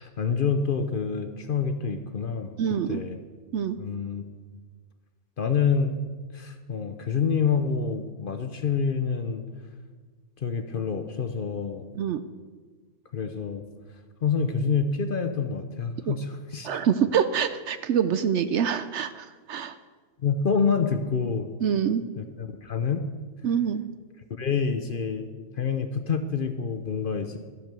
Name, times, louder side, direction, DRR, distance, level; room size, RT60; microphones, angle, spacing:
voice 1, 0.0-2.5 2.9-3.2 3.8-4.2 5.4-6.0 6.3-9.4 10.4-11.9 13.1-13.6 14.2-16.8 20.2-21.5 22.2-23.1 24.4-25.3 25.6-27.4, left 5 dB, 50° left, 7 dB, 0.8 m, -27 dB
voice 2, 2.6-3.0 3.5-3.8 12.0-12.2 16.1-16.2 16.6-19.7 21.6-22.1 23.4-23.8, right 8 dB, 65° right, 12 dB, 0.8 m, -25 dB
12.5 x 7.6 x 6.7 m, 1.4 s
omnidirectional pair, 1.4 m